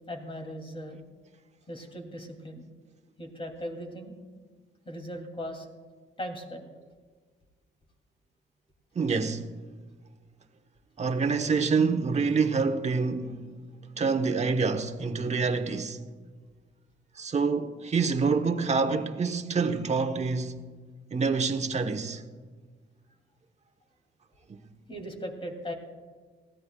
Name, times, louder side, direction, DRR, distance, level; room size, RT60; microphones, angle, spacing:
voice 1, 0.1-1.0 1.7-2.6 3.2-4.1 4.8-5.7 6.2-6.7 24.9-25.7, equal, 25° left, 2.8 m, -38 dB
voice 2, 8.9-9.4 11.0-13.4 14.0-16.0 17.2-20.6 21.1-22.2 24.5-24.6, right 4 dB, 35° right, 1.1 m, -26 dB
20.0 x 15.5 x 2.3 m
cardioid pair, 90°, 20 cm